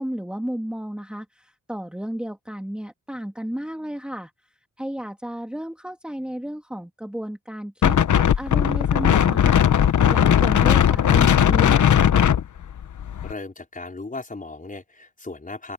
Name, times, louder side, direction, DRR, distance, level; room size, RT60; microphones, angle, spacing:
voice 1, 0.0-4.3 4.8-9.8 10.1-12.1, equal, 5° right, 2.0 m, -33 dB
Wind, 7.8-13.3, left 9 dB, 70° left, 1.0 m, -18 dB
voice 2, 13.2-15.7, left 3 dB, 25° left, 5.1 m, -36 dB
open air
cardioid pair, 85°, 31 cm